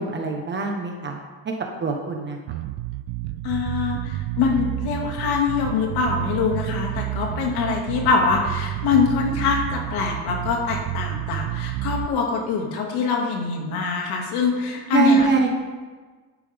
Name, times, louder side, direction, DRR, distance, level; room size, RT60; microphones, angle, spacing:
voice 1, 0.0-1.5 1.8-2.4 14.9-15.5, right 4 dB, 30° right, 2 dB, 1.2 m, -23 dB
Bass guitar, 2.5-12.1, right 15 dB, 85° right, 0.5 m, -30 dB
voice 2, 3.4-15.3, left 5 dB, 80° left, 1 dB, 2.3 m, -24 dB
11.5 x 11.0 x 3.5 m, 1.4 s
cardioid pair, 140°, 38 cm